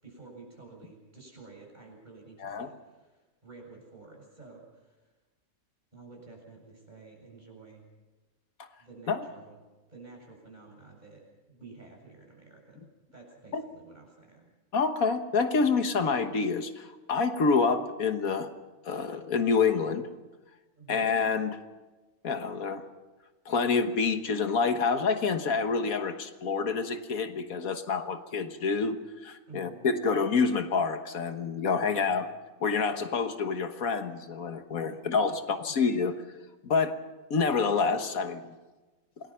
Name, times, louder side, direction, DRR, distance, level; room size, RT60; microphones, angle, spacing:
voice 1, 0.0-5.0 5.9-7.8 8.8-9.6 9.9-11.2 11.5-14.5 20.7-21.1 29.5-29.9 31.7-32.1 34.9-35.2, right 4 dB, 30° right, -1 dB, 7.5 m, -51 dB
voice 2, 2.4-2.7 9.1-9.2 13.5-13.7 14.7-18.5 18.9-20.1 20.9-21.6 22.2-22.8 23.5-32.3 32.6-36.1 36.6-37.0 37.3-38.5, left 5 dB, 85° left, 8 dB, 1.8 m, -27 dB
27.5 x 19.5 x 5.8 m, 1.2 s
omnidirectional pair, 1.5 m